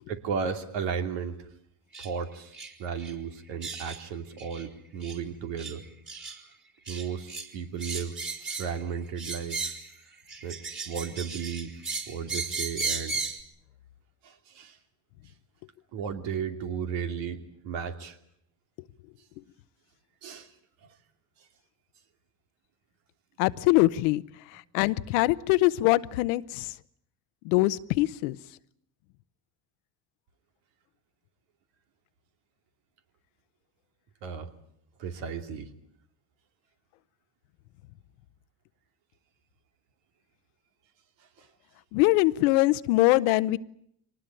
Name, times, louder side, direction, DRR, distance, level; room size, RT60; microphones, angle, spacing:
voice 1, 0.1-1.5 2.0-2.5 2.8-5.8 6.9-8.2 8.5-9.8 10.4-10.6 10.8-11.7 12.1-13.2 14.2-14.8 15.9-18.2 20.2-20.5 34.2-34.5 35.0-35.7 41.4-41.5, right 6 dB, 75° right, 6 dB, 2.9 m, -34 dB
sound 1, 1.9-2.1 2.5-2.7 3.0-3.1 3.6-4.0 4.4-4.6 5.0-5.2 5.6-5.7 6.1-6.4 6.9-7.5 7.8-8.8 9.2-9.9 10.3-13.4, right 4 dB, 25° right, 4.2 m, -35 dB
voice 2, 23.4-24.2 24.5-26.7 27.4-28.4 41.9-43.6, left 19 dB, 85° left, 16 dB, 0.9 m, -23 dB
24.0 x 19.5 x 9.0 m, 0.69 s
supercardioid pair, 100°, 44 cm